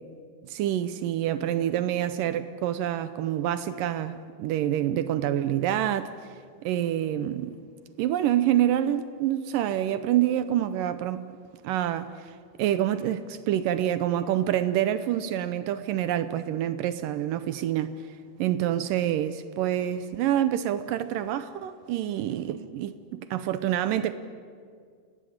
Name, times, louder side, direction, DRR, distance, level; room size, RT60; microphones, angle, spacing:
voice 1, 0.5-6.1 6.6-7.6 8.0-11.2 11.6-18.0 18.4-24.1, right 11 dB, 75° right, 2.0 m, -27 dB
29.0 x 17.0 x 8.7 m
omnidirectional pair, 4.6 m